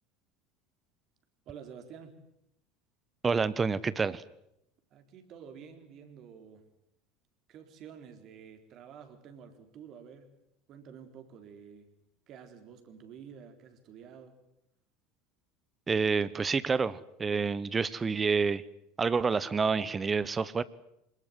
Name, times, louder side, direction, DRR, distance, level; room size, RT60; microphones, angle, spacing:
voice 1, 1.5-2.2 4.9-6.6 7.5-10.3 10.7-11.9 12.3-14.4, right 7 dB, 45° right, 7 dB, 4.1 m, -50 dB
voice 2, 3.2-4.2 15.9-18.6 19.0-20.6, right 5 dB, 20° right, 19 dB, 1.0 m, -28 dB
26.5 x 19.5 x 9.7 m, 0.81 s
figure-of-eight pair, 70°, 0 cm